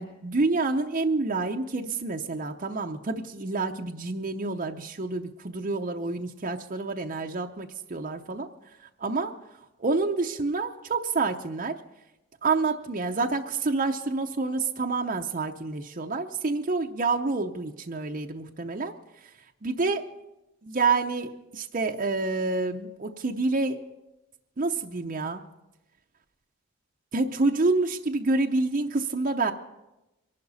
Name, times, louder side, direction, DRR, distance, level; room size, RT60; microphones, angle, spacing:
voice 1, 0.0-8.5 8.8-9.3 9.8-11.8 12.4-18.9 19.6-20.1 20.6-23.8 24.6-25.4 27.1-29.5, right 3 dB, 40° right, 3 dB, 0.6 m, -28 dB
23.5 x 12.0 x 4.1 m, 0.97 s
head